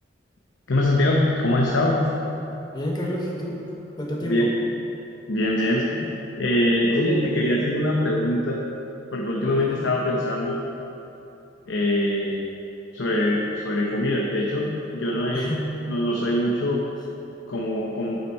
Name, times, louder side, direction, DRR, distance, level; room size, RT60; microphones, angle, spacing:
voice 1, 0.7-2.1 4.2-4.5 5.3-5.9 6.4-8.6 9.1-10.6 11.7-12.4 12.9-15.5 15.9-16.8 17.5-18.2, left 1 dB, 80° left, -2 dB, 0.8 m, -23 dB
voice 2, 2.7-4.5 5.9-6.1 9.4-9.7 15.3-15.7, equal, 20° left, -2 dB, 1.0 m, -30 dB
8.2 x 5.9 x 4.5 m, 2.9 s
head